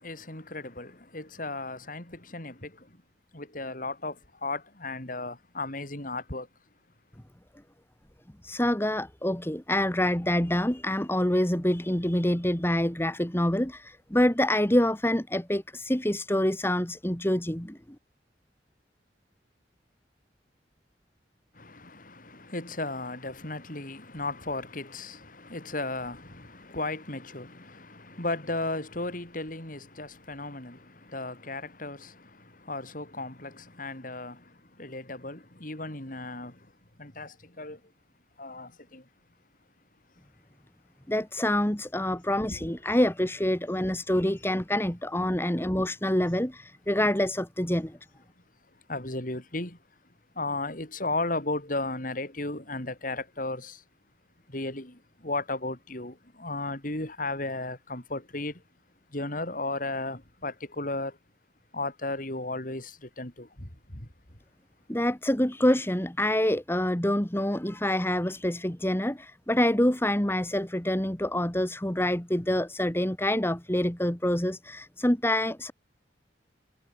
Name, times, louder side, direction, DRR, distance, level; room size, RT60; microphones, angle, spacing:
voice 1, 0.0-3.0 3.3-6.5 21.5-36.7 37.0-37.8 38.4-39.1 42.5-42.6 48.9-49.8 50.3-53.8 54.5-58.6 59.1-61.2 61.7-64.1, left 2 dB, 50° left, 4.9 m, -35 dB
voice 2, 8.4-17.8 41.1-48.0 64.9-75.7, left 1 dB, 15° left, 1.9 m, -26 dB
head